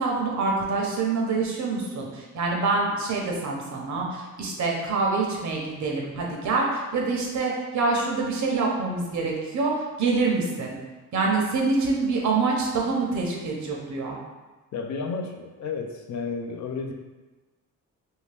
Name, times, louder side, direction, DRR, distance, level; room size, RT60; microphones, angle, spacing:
voice 1, 0.0-10.7 11.1-14.2, right 3 dB, 65° right, -1 dB, 0.9 m, -26 dB
voice 2, 14.7-16.9, left 4 dB, 65° left, 3 dB, 0.5 m, -32 dB
3.0 x 2.8 x 3.3 m, 1.2 s
cardioid pair, 105°, 31 cm